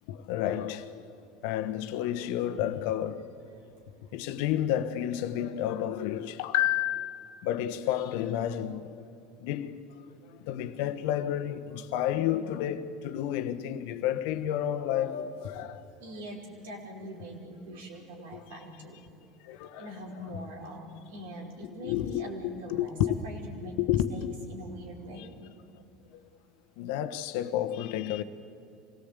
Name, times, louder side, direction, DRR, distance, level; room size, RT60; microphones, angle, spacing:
voice 1, 0.1-1.1 1.4-3.3 4.1-9.0 9.4-9.8 10.1-15.8 18.3-18.4 19.4-19.9 21.8-23.1 23.6-24.3 25.2-25.3 26.8-28.2, left 11 dB, 75° left, 1.2 m, -31 dB
voice 2, 16.0-19.0 19.8-22.9 23.2-23.7 24.1-25.3, right 1 dB, 85° right, 4.9 m, -43 dB
24.5 x 18.0 x 8.3 m
supercardioid pair, 100°, 0 cm